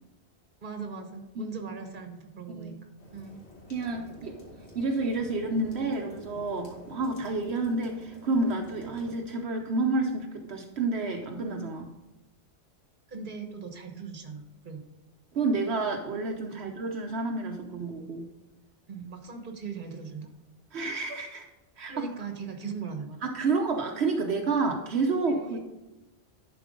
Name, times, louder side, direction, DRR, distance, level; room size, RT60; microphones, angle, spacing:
voice 1, 0.6-2.7 3.1-3.4 13.1-14.8 16.6-16.7 18.9-20.3 21.9-23.2 25.2-25.6, right 5 dB, 50° right, 5 dB, 1.3 m, -39 dB
sound 1, 3.0-9.2, left 1 dB, 80° left, 2.3 m, -49 dB
voice 2, 3.7-4.4 4.7-11.9 15.3-18.3 20.7-21.5 21.8-22.0 23.2-25.6, right 3 dB, 75° right, 2 dB, 1.1 m, -29 dB
11.0 x 4.5 x 5.1 m, 1.1 s
omnidirectional pair, 1.1 m